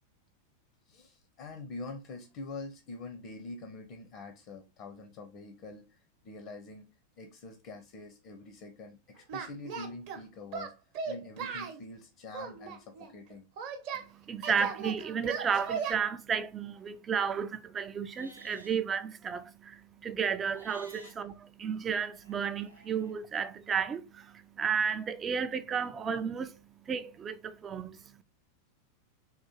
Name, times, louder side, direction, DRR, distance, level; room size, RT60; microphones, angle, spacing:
voice 1, 0.9-6.9 7.2-10.7 11.1-13.5 21.0-21.1, left 3 dB, 45° left, 0.6 m, -45 dB
Singing, 9.3-10.2 10.5-11.8 12.3-14.0 14.4-15.9, right 6 dB, 45° right, 0.7 m, -37 dB
voice 2, 13.9-28.2, right 7 dB, 20° right, 0.3 m, -33 dB
Livestock farm animals working animals, 18.1-18.8 20.5-21.1 22.2-23.1, right 1 dB, 90° right, 0.5 m, -54 dB
3.6 x 2.4 x 2.8 m
figure-of-eight pair, 90°, 0 cm